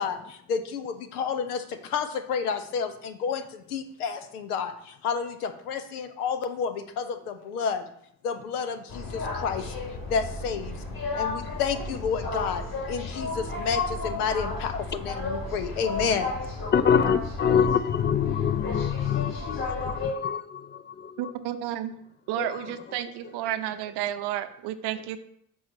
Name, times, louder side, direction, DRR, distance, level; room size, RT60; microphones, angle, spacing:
voice 1, 0.0-7.9 8.2-9.7 10.1-10.8 11.1-16.3, left 6 dB, 80° left, 10 dB, 0.8 m, -30 dB
sound 1, 8.9-20.1, left 3 dB, 50° left, 3.4 m, -33 dB
voice 2, 16.7-20.4, left 7 dB, 25° left, 13 dB, 0.4 m, -24 dB
voice 3, 21.2-22.0 22.3-25.2, right 12 dB, 60° right, 10 dB, 0.8 m, -31 dB
6.2 x 4.7 x 5.9 m, 0.70 s
figure-of-eight pair, 45°, 45 cm